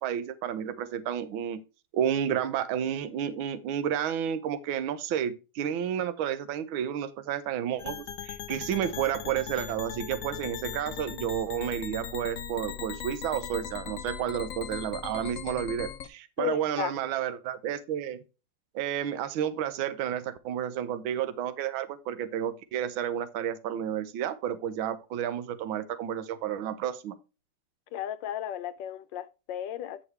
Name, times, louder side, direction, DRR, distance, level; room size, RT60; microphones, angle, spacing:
voice 1, 0.0-1.6 1.9-18.2 18.7-27.1, right 9 dB, 70° right, 1.5 m, -31 dB
sound 1, 7.8-16.1, left 8 dB, 85° left, 0.7 m, -39 dB
voice 2, 16.4-17.0 27.9-30.0, left 11 dB, 70° left, 1.2 m, -34 dB
9.9 x 6.3 x 3.1 m
omnidirectional pair, 2.4 m